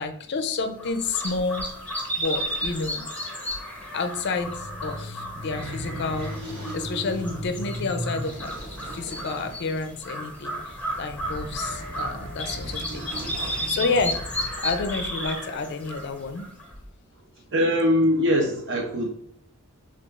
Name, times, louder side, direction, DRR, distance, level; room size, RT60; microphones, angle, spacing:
voice 1, 0.0-1.7 2.2-3.1 3.9-6.3 6.7-8.5 8.9-13.1 13.7-14.2 14.6-16.5, left 4 dB, 50° left, 9 dB, 0.4 m, -29 dB
sound 1, 0.8-16.8, equal, 5° left, 0.7 m, -34 dB
sound 2, 4.2-14.6, equal, 20° right, 1.1 m, -37 dB
voice 2, 17.5-19.1, equal, 55° right, 2 dB, 0.6 m, -22 dB
6.0 x 2.3 x 2.3 m, 0.69 s
head